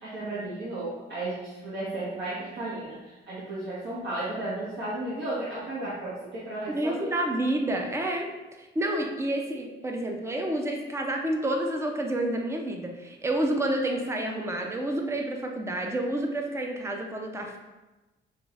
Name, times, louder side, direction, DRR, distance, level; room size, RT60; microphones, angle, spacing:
voice 1, 0.0-3.0 3.3-7.1, right 2 dB, 60° right, -10 dB, 1.4 m, -34 dB
voice 2, 6.7-8.3 8.6-17.6, right 1 dB, 15° right, 2 dB, 0.6 m, -29 dB
6.2 x 3.0 x 2.5 m, 1.1 s
cardioid pair, 90°, 20 cm